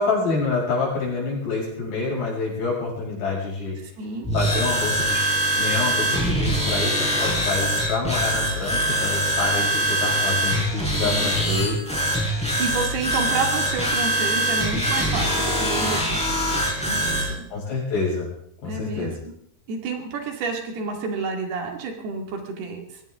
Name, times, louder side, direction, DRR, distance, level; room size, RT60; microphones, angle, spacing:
voice 1, 0.0-3.8 4.3-5.2 5.6-11.8 17.5-18.3 18.6-19.1, left 4 dB, 85° left, -3 dB, 8.5 m, -27 dB
voice 2, 3.8-4.3 11.0-11.3 12.3-16.2 16.8-17.5 18.7-19.3 19.7-23.0, right 4 dB, 75° right, 3 dB, 4.1 m, -30 dB
sound 1, 4.2-17.3, right 1 dB, ahead, 5.4 m, -23 dB
22.5 x 17.0 x 3.6 m, 0.69 s
omnidirectional pair, 4.7 m